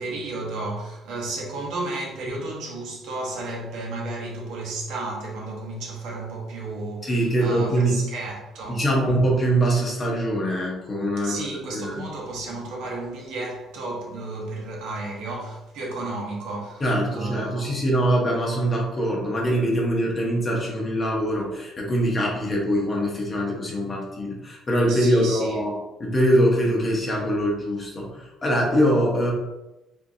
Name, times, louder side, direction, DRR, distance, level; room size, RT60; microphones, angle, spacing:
voice 1, 0.0-8.8 11.2-17.7 24.9-25.6, right 2 dB, 70° right, 1.0 m, -33 dB
voice 2, 7.0-8.0 8.7-12.1 16.8-25.7 26.0-29.3, right 1 dB, 20° left, 0.8 m, -23 dB
3.9 x 3.7 x 2.6 m
cardioid pair, 180°, 0 cm